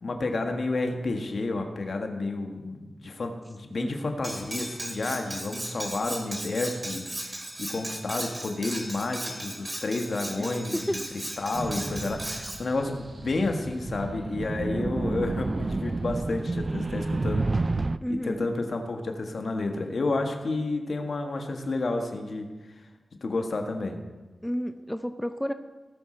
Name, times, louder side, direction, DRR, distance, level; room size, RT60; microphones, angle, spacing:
voice 1, 0.0-17.5 18.1-22.5 23.2-24.0, left 2 dB, 65° left, 4 dB, 1.4 m, -30 dB
Cutlery silverware, 4.2-12.6, right 1 dB, 25° right, 2.2 m, -36 dB
sound 1, 11.5-18.0, right 3 dB, 40° right, 0.3 m, -30 dB
voice 2, 18.0-18.5 24.4-25.5, equal, 5° left, 8 dB, 0.5 m, -31 dB
18.0 x 6.2 x 4.4 m, 1.3 s
cardioid pair, 60°, 0 cm